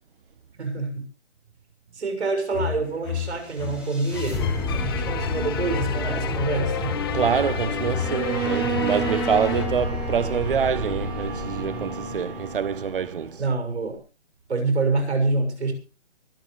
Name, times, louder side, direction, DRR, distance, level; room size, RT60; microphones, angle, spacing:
voice 1, 0.6-1.0 1.9-4.5 4.7-7.0 13.4-14.0 14.5-15.7, right 3 dB, 65° right, 6.5 m, -26 dB
sound 1, 2.5-9.7, left 9 dB, 20° left, 0.9 m, -31 dB
sound 2, 3.4-13.6, left 2 dB, 5° right, 4.9 m, -31 dB
voice 2, 7.1-13.4, right 7 dB, 50° right, 0.9 m, -26 dB
Bowed string instrument, 8.0-13.0, right 5 dB, 25° right, 5.5 m, -32 dB
24.0 x 12.5 x 3.2 m
hypercardioid pair, 160°, 36 cm